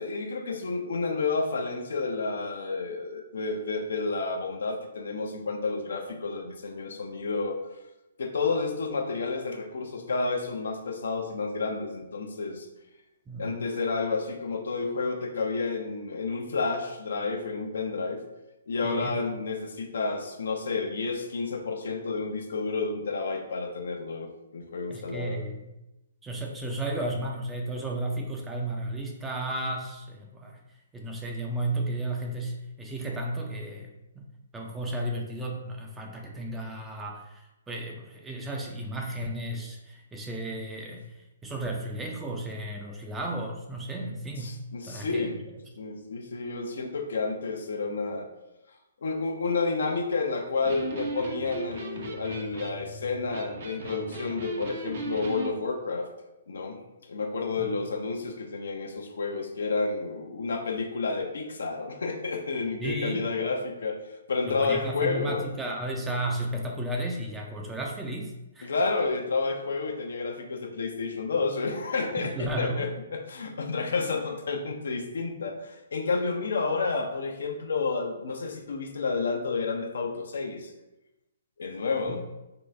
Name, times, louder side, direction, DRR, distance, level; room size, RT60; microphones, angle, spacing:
voice 1, 0.0-7.6 8.2-12.7 13.4-18.2 18.7-25.4 44.4-45.3 45.8-48.3 49.0-56.1 56.5-65.4 68.6-80.7 81.6-82.2, left 4 dB, 75° left, 4 dB, 0.6 m, -30 dB
voice 2, 18.8-19.2 24.9-25.7 26.2-30.6 30.9-34.3 34.5-44.6 44.9-45.4 57.6-57.7 62.8-63.3 64.5-68.7 72.2-72.9 82.1-82.2, right 1 dB, 10° right, 0 dB, 0.4 m, -34 dB
Electric guitar, 50.5-55.5, right 2 dB, 60° right, 0.8 m, -37 dB
3.9 x 2.3 x 3.2 m, 0.96 s
hypercardioid pair, 140°, 0 cm